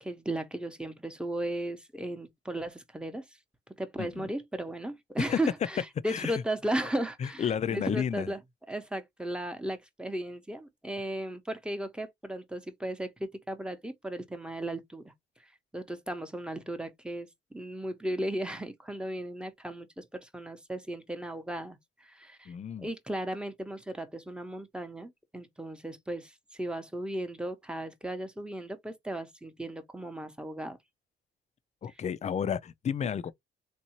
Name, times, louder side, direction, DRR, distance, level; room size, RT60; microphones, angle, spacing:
voice 1, 0.0-3.2 3.8-8.4 8.7-15.1 15.7-30.8 31.9-32.0, right 1 dB, 5° right, 0.8 m, -36 dB
voice 2, 4.0-4.3 5.2-5.4 6.1-6.4 7.2-8.3 22.5-22.9 31.8-33.3, left 8 dB, 35° left, 0.4 m, -32 dB
3.6 x 2.6 x 2.9 m
cardioid pair, 90°, 20 cm